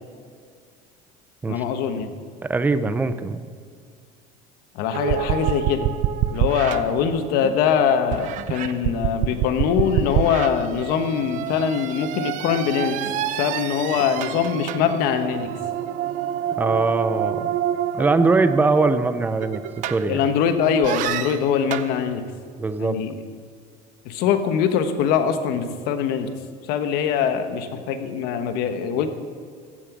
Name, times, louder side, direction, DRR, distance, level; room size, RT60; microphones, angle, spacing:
voice 1, 1.5-2.1 4.7-5.9 6.3-13.0 13.4-15.5 20.1-22.2 22.8-23.1 24.0-26.3 26.7-29.1, left 7 dB, 60° left, 8 dB, 1.3 m, -22 dB
voice 2, 2.4-3.5 16.6-17.5 17.9-19.6 19.9-20.3 22.6-23.0, right 3 dB, 10° right, 11 dB, 0.5 m, -21 dB
sound 1, 4.9-7.6 8.1-20.4 20.8-21.9, right 11 dB, 50° right, 0.6 m, -27 dB
15.0 x 8.8 x 6.1 m, 2.1 s
cardioid pair, 155°, 17 cm